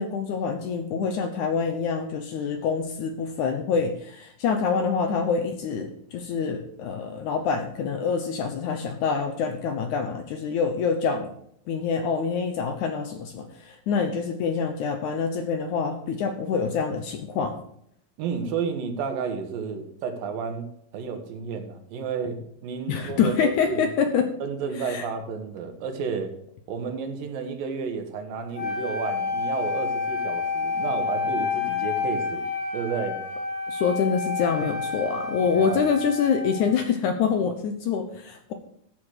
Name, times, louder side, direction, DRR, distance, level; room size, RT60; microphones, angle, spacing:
voice 1, 0.0-11.3 11.7-17.6 22.9-24.3 24.9-25.0 33.7-38.5, left 6 dB, 70° left, 6 dB, 1.9 m, -26 dB
voice 2, 18.2-23.9 24.4-26.3 26.7-32.5 32.7-33.2 35.5-35.9, right 6 dB, 75° right, 5 dB, 2.9 m, -31 dB
Wind instrument woodwind instrument, 28.5-36.8, left 4 dB, 10° left, 1.9 m, -29 dB
12.5 x 7.5 x 4.8 m, 0.69 s
omnidirectional pair, 4.2 m